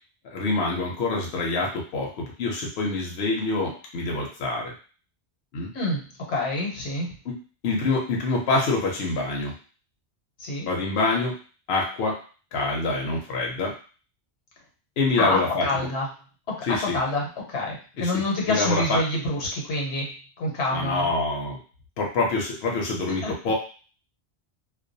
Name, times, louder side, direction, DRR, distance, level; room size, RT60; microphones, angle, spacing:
voice 1, 0.3-4.7 5.5-5.7 7.2-7.4 7.6-9.5 10.7-11.4 11.7-12.2 12.5-13.7 15.0-15.7 16.6-17.0 18.0-19.0 20.7-21.6 22.0-23.5, left 3 dB, 70° left, -1 dB, 0.8 m, -26 dB
voice 2, 5.7-7.1 10.4-10.7 15.2-16.1 16.5-20.1 20.4-21.1 23.2-23.3, left 2 dB, 85° left, -1 dB, 1.1 m, -27 dB
2.2 x 2.2 x 2.6 m, 0.38 s
omnidirectional pair, 1.1 m